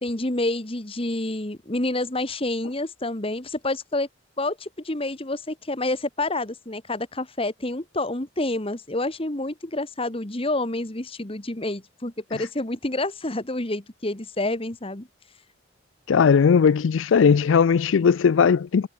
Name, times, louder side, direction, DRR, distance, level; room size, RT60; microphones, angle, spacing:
voice 1, 0.0-4.1 4.4-15.1, left 2 dB, 30° left, 1.6 m, -28 dB
voice 2, 16.1-18.9, left 6 dB, 75° left, 0.4 m, -18 dB
head